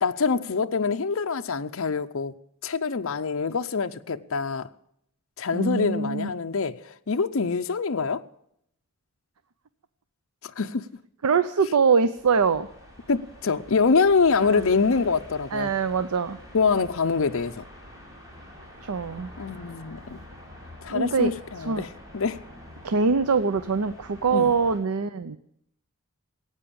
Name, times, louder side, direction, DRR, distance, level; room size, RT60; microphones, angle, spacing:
voice 1, 0.0-2.3 2.6-4.7 5.4-8.2 10.6-10.8 13.1-15.7 16.5-17.6 19.4-20.2 20.8-22.4 24.3-24.5, left 4 dB, 60° left, 0.6 m, -25 dB
voice 2, 5.5-6.3 11.2-12.7 14.5-14.7 15.5-16.4 18.8-19.3 20.9-21.3 21.6-21.9 22.8-25.4, right 5 dB, 85° right, 0.6 m, -23 dB
sound 1, 12.1-24.8, left 1 dB, 15° right, 4.6 m, -46 dB
15.5 x 9.1 x 8.7 m
head